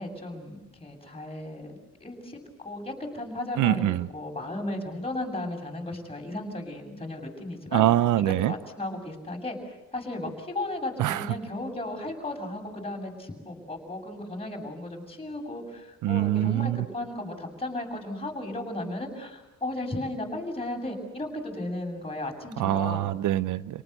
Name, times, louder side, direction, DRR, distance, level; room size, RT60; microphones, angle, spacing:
voice 1, 0.0-2.4 2.6-7.9 8.2-23.1, left 1 dB, 20° left, 1 dB, 7.5 m, -35 dB
voice 2, 3.6-4.1 7.7-8.5 11.0-11.3 16.0-16.9 22.6-23.8, right 13 dB, 80° right, 15 dB, 0.8 m, -24 dB
29.0 x 19.0 x 8.1 m, 1.0 s
cardioid pair, 90°, 30 cm